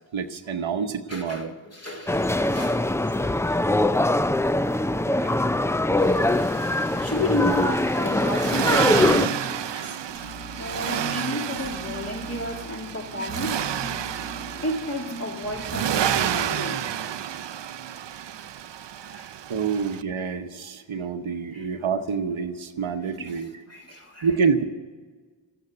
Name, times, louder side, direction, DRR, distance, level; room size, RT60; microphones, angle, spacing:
voice 1, 0.1-1.5 5.1-5.4 19.5-23.5 24.2-24.6, right 5 dB, 80° right, 1.0 m, -27 dB
voice 2, 1.1-2.9 5.3-5.5 6.4-10.3 10.6-13.7 14.5-17.0 18.4-18.5 19.0-19.3 21.5-21.7 23.2-23.4 23.7-24.3, left 1 dB, 30° left, 2.5 m, -32 dB
sound 1, 2.1-9.3, left 1 dB, 5° left, 0.3 m, -22 dB
Accelerating revving vroom, 6.0-20.0, right 10 dB, 65° right, 0.6 m, -30 dB
sound 2, 10.1-16.6, equal, 50° left, 5.5 m, -42 dB
13.0 x 9.2 x 9.5 m
cardioid pair, 45°, 47 cm